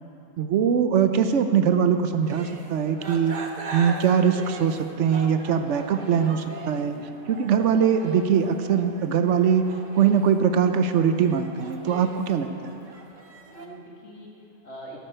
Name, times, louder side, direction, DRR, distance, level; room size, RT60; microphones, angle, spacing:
voice 1, 0.4-3.3 3.7-7.0 7.3-9.6 9.9-12.5, right 7 dB, 75° right, 8 dB, 1.0 m, -22 dB
sound 1, 2.2-13.7, right 3 dB, 40° right, 1.0 m, -40 dB
voice 2, 6.7-7.1 13.5-15.0, right 1 dB, 60° left, -3 dB, 2.3 m, -44 dB
14.0 x 12.5 x 4.4 m, 2.8 s
omnidirectional pair, 1.3 m